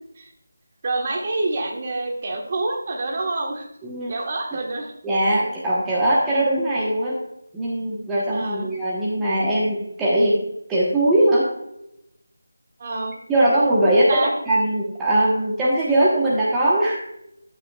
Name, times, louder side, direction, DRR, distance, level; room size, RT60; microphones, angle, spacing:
voice 1, 0.8-3.7 4.1-4.9 8.3-8.7 12.8-13.1 13.9-14.3, right 2 dB, 35° right, 1 dB, 1.4 m, -27 dB
voice 2, 3.8-4.1 4.5-4.6 5.0-7.2 7.5-10.4 10.7-11.5 13.3-14.2 14.5-17.0, right 1 dB, 10° right, -6 dB, 1.0 m, -20 dB
12.0 x 8.1 x 2.3 m, 0.82 s
figure-of-eight pair, 170°, 0 cm